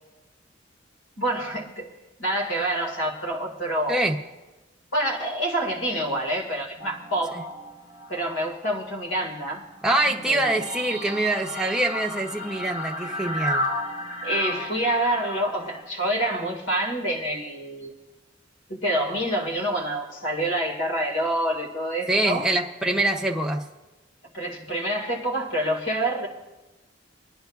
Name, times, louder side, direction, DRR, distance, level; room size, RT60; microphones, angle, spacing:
voice 1, 1.2-1.9 2.2-4.1 4.9-7.4 8.1-9.7 10.3-10.7 14.2-17.9 18.7-22.5 24.3-26.3, right 1 dB, 70° left, 1 dB, 1.8 m, -27 dB
sound 1, 6.8-8.6 8.9-15.8, left 1 dB, 30° left, 2.1 m, -34 dB
voice 2, 9.8-13.7 22.1-23.6, right 1 dB, 5° right, 0 dB, 0.6 m, -24 dB
27.0 x 10.5 x 2.3 m, 1.1 s
head